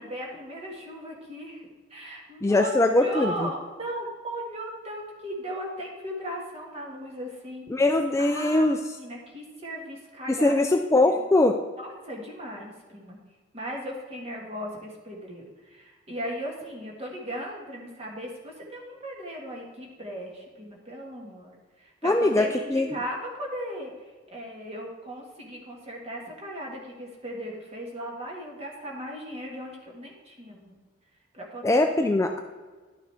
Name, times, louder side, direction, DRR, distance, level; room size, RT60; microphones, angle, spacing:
voice 1, 0.0-7.6 8.2-10.5 11.0-11.2 11.8-13.2 13.5-23.9 24.3-30.8 31.3-31.8, equal, 30° right, -1 dB, 1.7 m, -37 dB
voice 2, 2.4-3.5 7.7-8.8 10.3-11.6 22.0-22.4 22.7-23.0 31.6-32.4, left 2 dB, 15° left, 5 dB, 0.3 m, -21 dB
11.0 x 6.3 x 3.4 m, 1.4 s
head